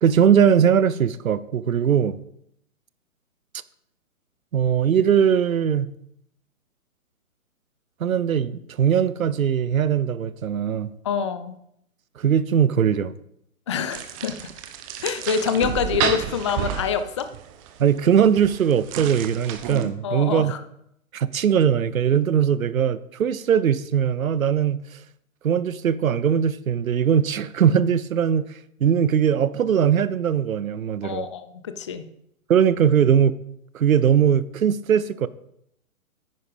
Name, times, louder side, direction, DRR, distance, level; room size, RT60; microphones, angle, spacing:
voice 1, 0.0-2.2 4.5-5.9 8.0-10.9 12.2-13.1 17.8-20.5 21.1-24.8 25.4-28.5 28.8-31.3 32.5-33.4 33.7-35.3, right 8 dB, 70° right, 0.8 m, -20 dB
voice 2, 11.0-11.6 13.7-14.5 15.0-17.3 20.0-20.6 31.0-32.1, left 7 dB, 20° left, 0.4 m, -26 dB
Pumpmkin Guts Long, 13.9-19.9, right 10 dB, 25° right, 0.9 m, -31 dB
9.8 x 9.6 x 5.2 m
hypercardioid pair, 135°, 42 cm